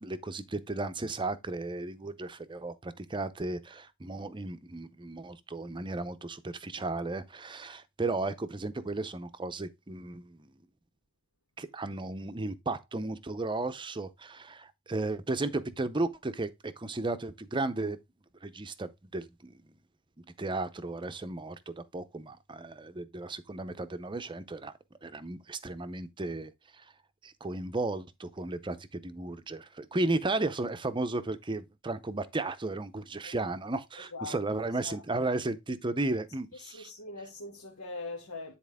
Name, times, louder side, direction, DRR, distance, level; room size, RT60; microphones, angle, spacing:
voice 1, 0.0-10.5 11.6-18.0 18.4-19.6 20.4-24.7 25.0-26.5 26.8-26.9 27.2-36.9, right 2 dB, 20° right, 0.6 m, -34 dB
voice 2, 36.6-38.5, left 3 dB, 90° left, 2.1 m, -41 dB
9.9 x 4.3 x 3.5 m
head